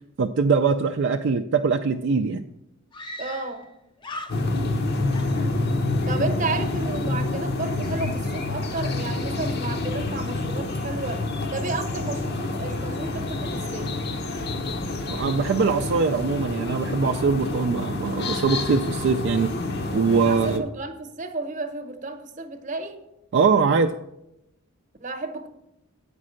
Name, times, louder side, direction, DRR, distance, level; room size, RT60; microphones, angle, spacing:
voice 1, 0.2-2.4 15.1-19.5 19.9-20.6 23.3-23.9, right 5 dB, 60° right, 4 dB, 0.4 m, -22 dB
Screaming, 2.1-2.2 2.9-3.7 4.0-4.8 5.1-6.0, left 1 dB, 25° left, 0.5 m, -39 dB
voice 2, 3.2-3.7 6.1-11.2 11.5-13.9 20.2-23.1 25.0-25.5, right 3 dB, 40° right, 7 dB, 0.9 m, -32 dB
sound 1, 4.3-20.6, left 2 dB, 55° left, 0.8 m, -28 dB
8.5 x 5.3 x 6.4 m, 0.87 s
head